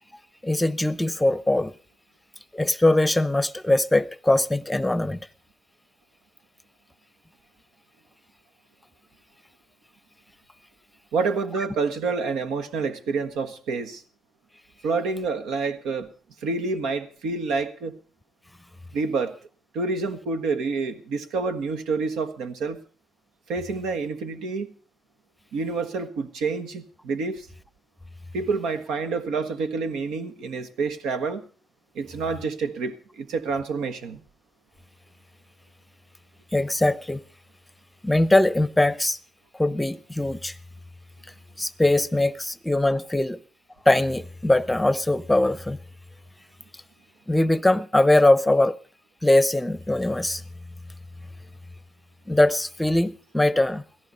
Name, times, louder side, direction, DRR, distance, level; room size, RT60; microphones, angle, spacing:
voice 1, 0.4-1.7 2.5-5.2 36.5-37.2 38.0-39.2 39.5-40.6 41.6-43.4 43.9-45.8 47.3-48.8 49.2-50.4 52.3-53.8, left 1 dB, 10° left, 0.7 m, -21 dB
voice 2, 11.1-14.0 14.8-16.1 16.4-18.0 18.9-19.4 19.7-22.8 23.5-24.7 25.5-27.5 28.3-31.4 31.9-34.2, right 4 dB, 85° right, 1.4 m, -28 dB
17.0 x 14.5 x 5.4 m
cardioid pair, 90°, 0 cm